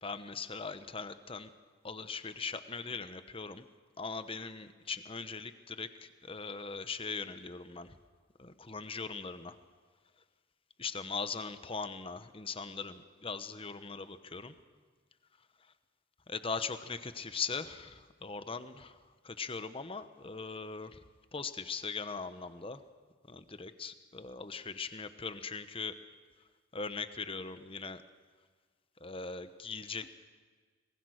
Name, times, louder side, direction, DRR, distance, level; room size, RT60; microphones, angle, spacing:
voice 1, 0.0-1.5 1.8-3.7 4.0-7.9 8.4-9.6 10.8-14.5 16.3-19.0 19.2-21.0 21.3-22.8 23.3-25.9 26.7-28.0 29.0-30.1, left 4 dB, 30° left, 11 dB, 1.0 m, -40 dB
25.5 x 20.0 x 6.5 m, 1.5 s
head